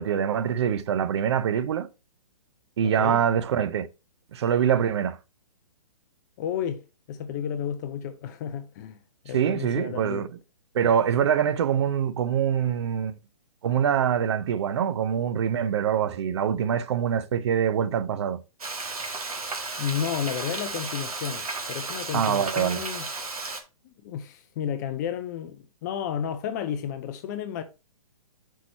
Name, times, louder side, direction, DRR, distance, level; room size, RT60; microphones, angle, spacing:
voice 1, 0.0-1.9 2.8-3.9 4.3-5.2 9.3-10.3 10.7-13.2 13.6-18.4 22.1-22.8, right 8 dB, 50° right, 0.6 m, -24 dB
voice 2, 2.8-3.2 6.4-6.8 7.1-9.0 9.2-10.3 19.8-23.1 23.8-27.6, left 9 dB, 30° left, 0.5 m, -32 dB
Frying (food), 18.6-23.6, right 3 dB, 75° right, 1.5 m, -34 dB
6.0 x 4.6 x 4.2 m
figure-of-eight pair, 130°, 19 cm